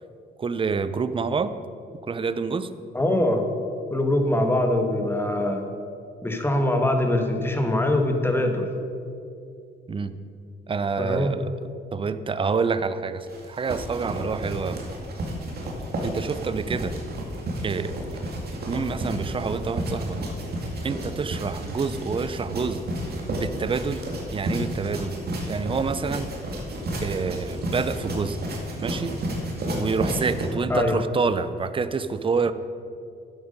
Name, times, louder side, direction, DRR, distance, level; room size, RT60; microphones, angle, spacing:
voice 1, 0.4-1.5 2.0-2.7 9.9-10.1 10.7-11.5 11.9-14.8 16.0-16.9 17.6-17.9 18.7-20.2 20.8-22.8 23.3-24.0 24.3-25.1 25.5-26.3 27.0-28.4 28.8-29.2 29.7-32.5, right 5 dB, 25° right, 13 dB, 0.5 m, -27 dB
voice 2, 2.9-3.5 3.9-5.6 6.2-8.7 11.0-11.3 30.7-31.0, left 1 dB, 10° left, 4 dB, 1.4 m, -23 dB
sound 1, 13.3-30.5, right 1 dB, 50° right, 2.2 m, -31 dB
11.0 x 8.1 x 5.2 m, 2.5 s
cardioid pair, 90°, 20 cm